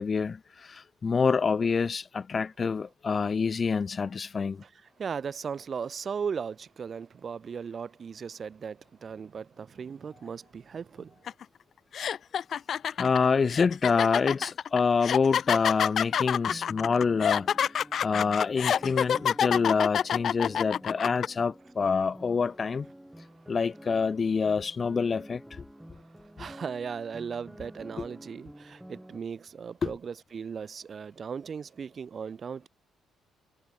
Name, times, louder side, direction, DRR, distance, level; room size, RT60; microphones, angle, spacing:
voice 1, 0.0-4.6 13.0-17.5 18.0-22.9 23.5-25.6 26.4-26.5 29.8-29.9, left 5 dB, 40° left, 0.7 m, -27 dB
voice 2, 5.0-11.1 26.4-32.7, right 6 dB, 45° right, 3.4 m, -37 dB
sound 1, 11.3-11.4 11.9-21.3, left 8 dB, 60° left, 0.3 m, -27 dB
sound 2, 16.1-29.2, right 1 dB, 5° right, 3.5 m, -49 dB
cardioid pair, 90°, 0 cm